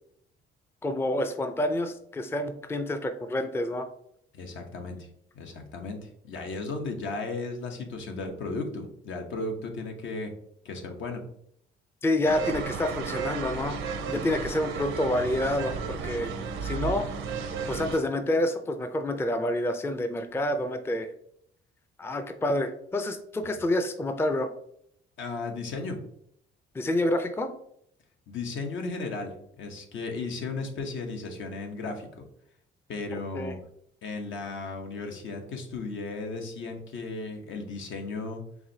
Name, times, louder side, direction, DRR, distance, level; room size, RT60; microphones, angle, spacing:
voice 1, 0.8-3.9 12.0-13.8 14.1-16.3 16.6-17.1 17.7-21.1 22.0-24.5 26.7-27.5 33.3-33.6, left 1 dB, 10° left, 7 dB, 0.4 m, -28 dB
voice 2, 4.3-5.1 5.3-10.3 10.6-11.2 23.4-23.6 25.2-26.0 28.3-32.2 32.9-33.6 34.0-38.4, left 3 dB, 75° left, 3 dB, 0.9 m, -35 dB
sound 1, 12.2-18.0, right 6 dB, 80° right, 0.6 m, -33 dB
4.8 x 3.3 x 2.7 m, 0.69 s
cardioid pair, 90°, 20 cm